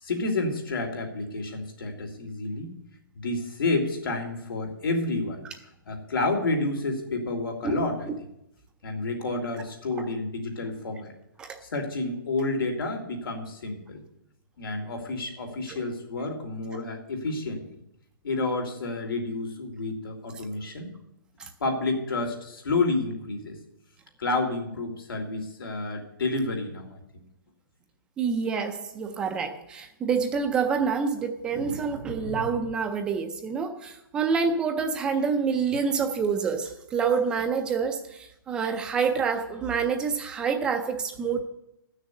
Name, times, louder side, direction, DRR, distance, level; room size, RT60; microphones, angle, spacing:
voice 1, 0.0-2.7 3.1-5.4 5.9-8.1 8.8-11.1 11.6-14.0 14.6-17.6 18.2-20.9 21.6-23.6 24.2-27.2, left 2 dB, 90° left, 2 dB, 3.2 m, -30 dB
voice 2, 28.2-41.4, right 5 dB, 5° right, 6 dB, 0.5 m, -27 dB
14.0 x 6.5 x 8.2 m, 0.81 s
hypercardioid pair, 175°, 11 cm